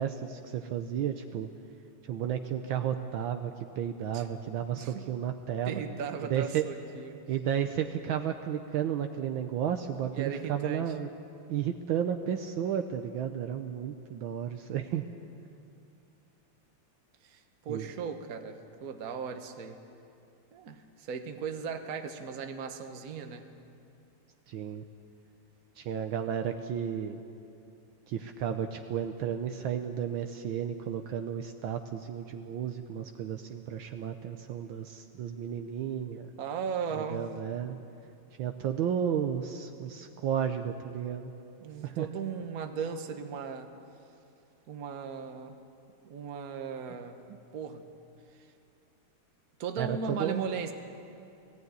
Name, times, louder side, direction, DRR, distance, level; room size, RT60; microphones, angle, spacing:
voice 1, 0.0-1.5 2.0-5.8 6.3-6.6 7.3-11.1 11.5-15.0 17.7-17.9 24.5-24.8 25.8-27.2 28.1-36.3 36.9-37.8 38.4-41.3 41.8-42.1 49.8-50.4, right 9 dB, 70° right, 6 dB, 1.4 m, -33 dB
voice 2, 5.7-7.2 10.2-10.9 17.2-19.8 20.5-23.4 36.4-37.3 41.6-43.7 44.7-45.5 46.0-47.2 47.5-47.8 49.6-50.7, right 6 dB, 50° right, 7 dB, 1.4 m, -37 dB
18.5 x 16.0 x 9.4 m, 2.6 s
omnidirectional pair, 2.4 m